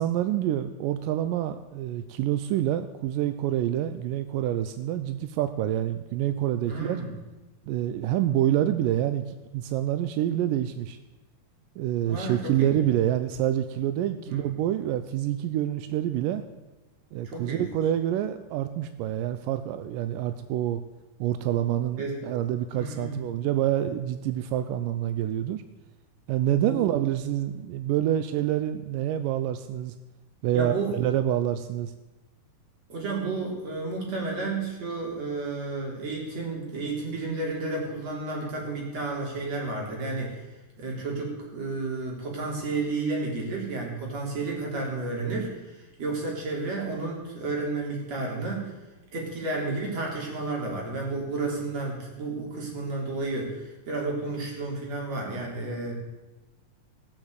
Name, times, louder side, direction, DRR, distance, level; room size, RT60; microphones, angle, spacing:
voice 1, 0.0-7.0 7.7-9.3 9.5-11.0 11.8-16.4 17.1-20.8 21.2-25.6 26.3-30.0 30.4-31.9, right 12 dB, 80° right, 10 dB, 2.0 m, -27 dB
voice 2, 6.7-7.1 12.1-12.8 14.3-14.5 17.2-17.7 22.0-22.2 22.7-23.2 26.7-26.8 30.5-31.0 32.9-40.5 40.8-48.7 49.1-55.9, right 3 dB, 45° right, -1 dB, 4.6 m, -32 dB
18.0 x 7.4 x 8.1 m, 1.1 s
omnidirectional pair, 4.4 m